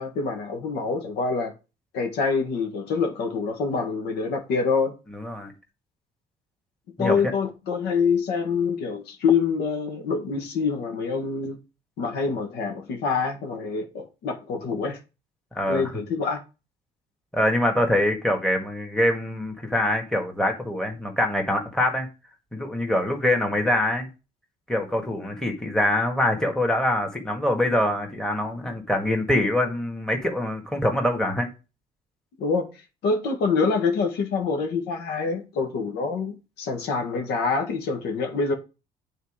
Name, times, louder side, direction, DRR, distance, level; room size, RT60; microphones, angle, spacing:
voice 1, 0.0-1.5 1.9-4.9 7.0-11.6 12.0-15.0 15.7-16.4 32.4-32.7 33.0-38.5, left 5 dB, 75° left, 1.6 m, -26 dB
voice 2, 5.1-5.5 7.0-7.3 15.5-16.0 17.3-22.1 22.5-24.1 24.7-31.5, left 1 dB, 5° left, 1.7 m, -24 dB
8.2 x 4.0 x 5.0 m
cardioid pair, 110°, 17 cm